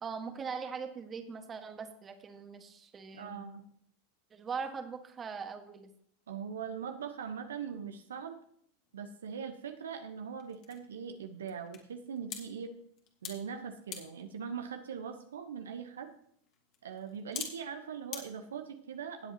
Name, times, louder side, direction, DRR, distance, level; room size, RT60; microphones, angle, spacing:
voice 1, 0.0-3.4 4.3-5.9, right 5 dB, 25° right, 6 dB, 1.7 m, -41 dB
voice 2, 3.1-3.6 6.3-8.4 8.9-12.7 13.2-16.1 16.8-19.3, right 7 dB, 80° right, 6 dB, 1.1 m, -41 dB
sound 1, 8.9-18.2, left 8 dB, 50° left, 2.6 m, -49 dB
18.0 x 8.1 x 3.0 m, 0.65 s
hypercardioid pair, 95°, 0 cm